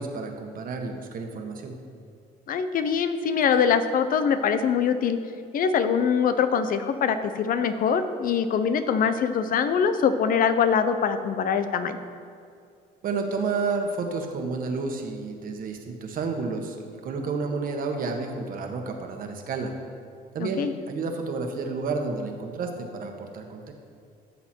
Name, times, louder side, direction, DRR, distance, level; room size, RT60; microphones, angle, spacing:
voice 1, 0.0-1.7 13.0-19.7 20.3-23.7, right 4 dB, 55° right, 3 dB, 1.5 m, -31 dB
voice 2, 2.5-5.2 5.5-12.0 20.4-20.7, left 7 dB, 55° left, 10 dB, 0.8 m, -23 dB
15.0 x 6.9 x 4.5 m, 2.3 s
cardioid pair, 110°, 17 cm